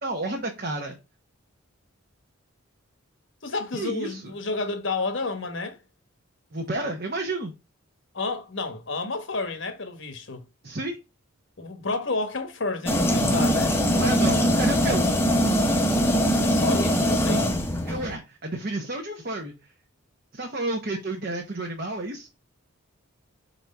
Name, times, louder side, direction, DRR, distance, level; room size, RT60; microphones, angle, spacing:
voice 1, 0.0-1.0 3.7-4.3 6.5-7.5 10.6-11.0 13.9-15.1 17.9-19.5 20.3-22.3, right 2 dB, 45° right, 1.0 m, -31 dB
voice 2, 3.4-5.8 8.1-10.4 11.6-13.8 16.4-17.6, left 3 dB, 60° left, 1.2 m, -30 dB
sound 1, 12.9-18.1, equal, 10° left, 0.8 m, -22 dB
4.7 x 4.2 x 5.2 m
head